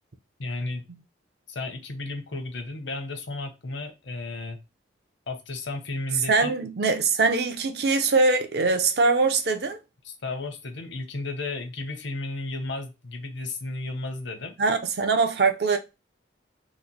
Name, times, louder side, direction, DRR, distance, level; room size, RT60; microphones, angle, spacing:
voice 1, 0.4-0.8 1.5-4.6 5.3-6.5 10.0-14.5, left 2 dB, 75° left, 0.7 m, -33 dB
voice 2, 6.3-9.8 14.6-15.8, right 4 dB, 55° right, 0.5 m, -22 dB
3.0 x 2.1 x 3.8 m
head